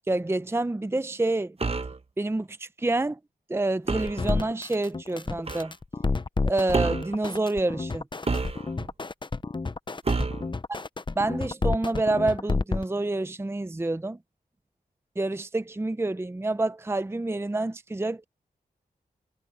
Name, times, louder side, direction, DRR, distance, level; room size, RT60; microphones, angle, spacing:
voice 1, 0.1-1.6 2.2-3.2 3.5-5.7 6.5-8.0 11.2-14.2 15.2-18.2, right 2 dB, 15° right, 0.7 m, -28 dB
sound 1, 1.6-2.0 3.9-4.2 5.5-5.7 6.7-7.1 8.3-8.9 10.1-10.5, right 3 dB, 40° right, 1.1 m, -28 dB
sound 2, 4.1-12.8, left 3 dB, 30° left, 0.8 m, -29 dB
cardioid pair, 55°, 16 cm